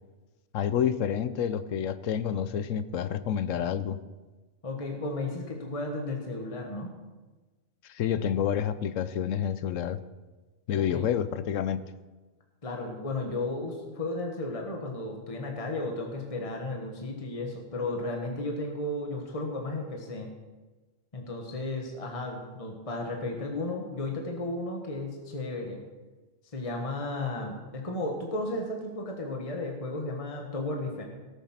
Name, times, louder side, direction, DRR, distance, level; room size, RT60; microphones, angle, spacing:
voice 1, 0.5-4.0 7.8-10.0 10.7-11.8, left 9 dB, 70° left, 13 dB, 1.0 m, -29 dB
voice 2, 4.6-6.9 10.7-11.1 12.6-20.3 21.1-25.8 26.5-31.0, left 2 dB, 25° left, 1 dB, 1.5 m, -34 dB
17.5 x 7.3 x 5.9 m, 1.2 s
omnidirectional pair, 1.4 m